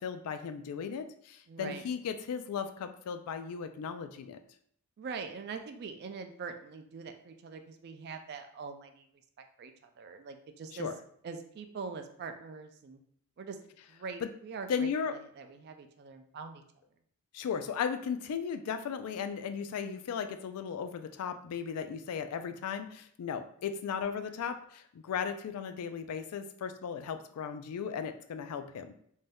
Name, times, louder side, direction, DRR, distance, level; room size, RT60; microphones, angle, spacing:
voice 1, 0.0-4.4 10.8-10.9 14.2-14.3 14.7-15.1 17.3-28.9, left 7 dB, 85° left, 9 dB, 0.3 m, -36 dB
voice 2, 1.5-1.8 5.0-9.1 9.6-10.9 11.2-13.0 13.4-13.6 13.9-16.6, right 5 dB, 45° right, 7 dB, 0.3 m, -43 dB
2.6 x 2.2 x 3.3 m, 0.66 s
head